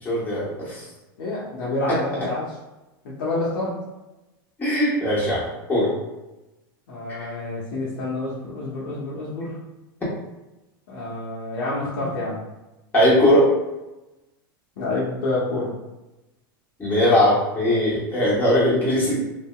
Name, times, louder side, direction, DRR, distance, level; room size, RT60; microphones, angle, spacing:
voice 1, 0.0-0.9 1.9-2.0 4.6-5.9 7.2-7.3 12.9-13.5 16.8-19.2, left 1 dB, 15° left, -8 dB, 1.3 m, -20 dB
voice 2, 1.2-2.5 3.0-3.8 6.9-9.6 10.9-12.4 14.8-15.7, left 2 dB, 70° left, -6 dB, 0.9 m, -28 dB
2.7 x 2.7 x 2.3 m, 1.0 s
hypercardioid pair, 110°, 12 cm